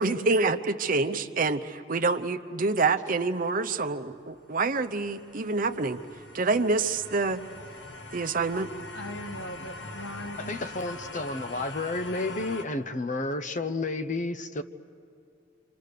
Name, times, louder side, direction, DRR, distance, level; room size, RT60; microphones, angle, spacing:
voice 1, 0.0-6.0 6.3-7.4 8.1-8.7, right 3 dB, 45° right, 8 dB, 0.8 m, -27 dB
sound 1, 3.9-12.6, left 2 dB, 70° left, 1.6 m, -43 dB
voice 2, 8.9-10.6, equal, 90° left, 3 dB, 1.9 m, -40 dB
voice 3, 10.5-14.6, left 2 dB, 45° left, 10 dB, 0.8 m, -31 dB
27.5 x 25.5 x 6.7 m, 2.5 s
head